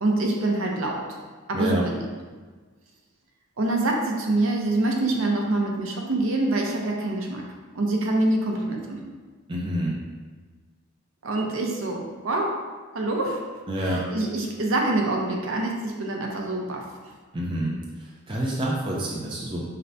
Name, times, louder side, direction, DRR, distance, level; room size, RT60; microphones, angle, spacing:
voice 1, 0.0-1.0 1.5-2.0 3.6-7.4 7.7-9.0 11.2-12.6 12.9-13.4 13.8-16.8, right 2 dB, 65° right, 0 dB, 0.7 m, -25 dB
voice 2, 9.5-10.0 13.7-14.1 17.3-17.8 18.3-19.7, right 1 dB, 20° right, -4 dB, 0.5 m, -27 dB
5.3 x 3.3 x 2.7 m, 1.4 s
head